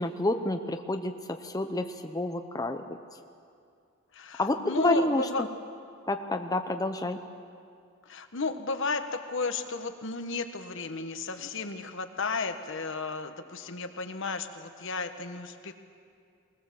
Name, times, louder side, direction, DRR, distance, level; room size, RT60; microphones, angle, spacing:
voice 1, 0.0-2.8 4.4-5.3 6.1-7.2, left 2 dB, 20° left, 6 dB, 0.7 m, -29 dB
voice 2, 4.1-5.4 8.1-15.7, left 4 dB, 65° left, 8 dB, 1.3 m, -33 dB
20.5 x 20.0 x 7.5 m, 2.4 s
head